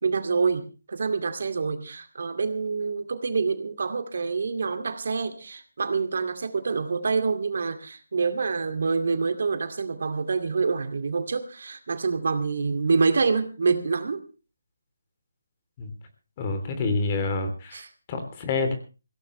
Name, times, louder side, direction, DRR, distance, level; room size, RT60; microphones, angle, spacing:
voice 1, 0.0-14.2 17.7-17.9, right 4 dB, 60° right, 8 dB, 2.3 m, -26 dB
voice 2, 16.4-17.8 18.1-18.7, left 3 dB, 25° left, 6 dB, 3.2 m, -27 dB
21.0 x 16.5 x 3.2 m, 0.33 s
figure-of-eight pair, 165°, 0 cm